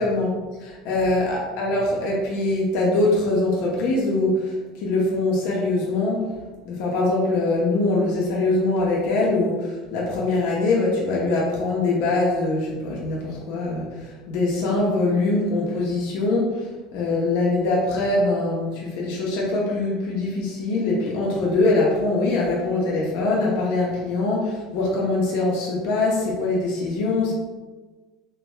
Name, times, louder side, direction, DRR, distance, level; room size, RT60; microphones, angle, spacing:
voice 1, 0.0-6.2 6.6-27.3, left 2 dB, 65° left, -3 dB, 0.9 m, -23 dB
4.7 x 3.0 x 2.3 m, 1.2 s
hypercardioid pair, 75°, 3 cm